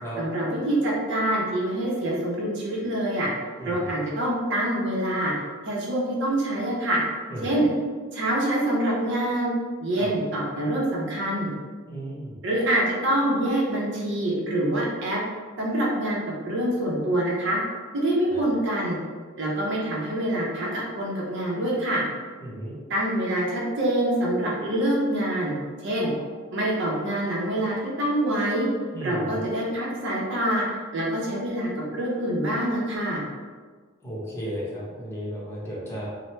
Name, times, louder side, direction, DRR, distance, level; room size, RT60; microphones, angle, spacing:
voice 1, 0.2-3.3 3.6-5.3 5.7-7.0 7.4-7.7 8.1-9.5 9.8-11.5 12.4-15.2 15.6-16.2 16.4-17.6 17.9-19.0 19.4-22.0 22.9-25.5 25.8-26.1 26.5-28.7 29.0-33.2, right 1 dB, 60° right, -4 dB, 0.7 m, -25 dB
voice 2, 3.6-3.9 7.3-7.6 10.0-10.1 11.9-12.4 18.3-18.4 22.4-22.7 26.0-26.1 28.9-29.5 34.0-36.1, equal, 15° left, -7 dB, 0.8 m, -34 dB
2.9 x 2.1 x 3.1 m, 1.5 s
head